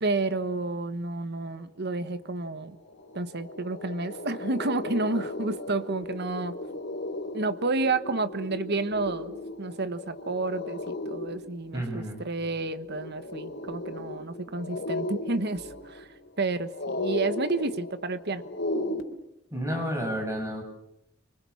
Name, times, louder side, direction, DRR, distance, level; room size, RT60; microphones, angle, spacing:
voice 1, 0.0-2.8 3.1-6.6 7.3-9.3 9.6-16.1 16.4-18.4, right 3 dB, 55° right, 12 dB, 1.4 m, -30 dB
sound 1, 2.4-2.5 2.8-19.0, left 1 dB, 60° left, 3.7 m, -36 dB
voice 2, 11.7-12.2 19.5-20.6, equal, 15° right, 4 dB, 7.6 m, -31 dB
29.5 x 24.5 x 7.2 m, 0.81 s
head